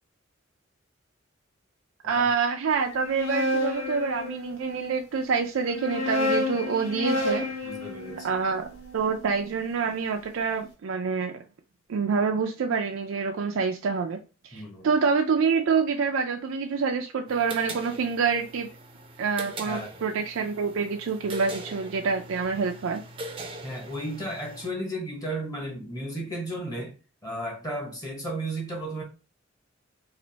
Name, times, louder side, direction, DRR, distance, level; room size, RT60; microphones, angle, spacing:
voice 1, 2.0-7.5 8.2-8.7 8.9-11.4 11.9-14.2 14.4-18.7 19.2-23.0, right 5 dB, 80° right, 0.4 m, -27 dB
sound 1, 2.9-4.8 5.6-9.7, left 2 dB, 80° left, 1.0 m, -30 dB
voice 2, 7.1-8.4 14.5-14.9 19.7-19.9 23.6-26.9 27.2-29.0, right 1 dB, 20° left, 1.1 m, -34 dB
sound 2, 17.3-24.7, right 2 dB, 25° right, 0.5 m, -41 dB
3.3 x 2.5 x 3.9 m
head